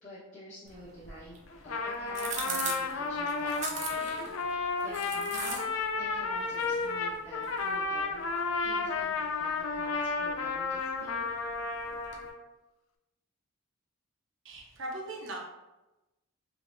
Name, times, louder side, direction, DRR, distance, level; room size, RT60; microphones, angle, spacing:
voice 1, 0.0-1.4 1.6-5.7 6.0-8.2 8.6-11.3, equal, 35° left, -10 dB, 1.1 m, -48 dB
sound 1, 0.6-12.3, right 4 dB, 35° right, 0.5 m, -43 dB
Trumpet, 1.5-12.4, left 4 dB, 75° left, 0.4 m, -32 dB
voice 2, 14.4-15.4, right 1 dB, 65° right, 0 dB, 0.8 m, -39 dB
5.4 x 2.9 x 2.2 m, 1.0 s
head